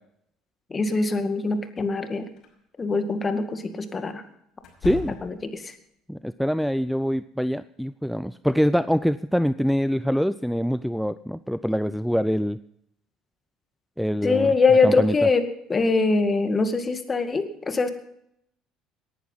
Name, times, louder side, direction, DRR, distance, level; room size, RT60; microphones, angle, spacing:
voice 1, 0.7-2.3 2.8-4.2 5.2-5.7 14.2-15.4 15.7-17.9, left 3 dB, 30° left, 8 dB, 2.1 m, -23 dB
sound 1, 2.4-2.5 4.6-5.6, left 5 dB, 60° left, 5.6 m, -38 dB
voice 2, 4.8-5.1 6.1-12.6 14.0-14.5 14.8-15.2, equal, ahead, 14 dB, 0.5 m, -24 dB
18.5 x 11.0 x 5.7 m, 0.75 s
hypercardioid pair, 70°, 0 cm